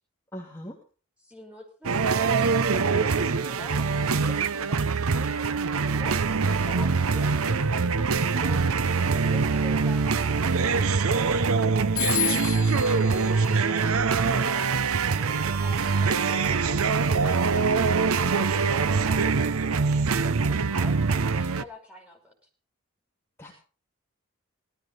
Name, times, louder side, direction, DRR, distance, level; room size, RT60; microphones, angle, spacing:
voice 1, 0.3-0.8 12.1-12.5 23.4-23.5, equal, 10° left, -3 dB, 2.9 m, -38 dB
voice 2, 1.2-5.7 6.0-8.7 9.1-11.6 12.8-14.7 15.1-17.8 18.3-22.3, left 1 dB, 5° right, 1 dB, 5.5 m, -46 dB
sound 1, 1.8-21.6, right 4 dB, 75° right, 0.7 m, -24 dB
Telephone, 12.0-14.5, left 14 dB, 70° left, 0.8 m, -32 dB
18.5 x 14.0 x 4.1 m, 0.38 s
head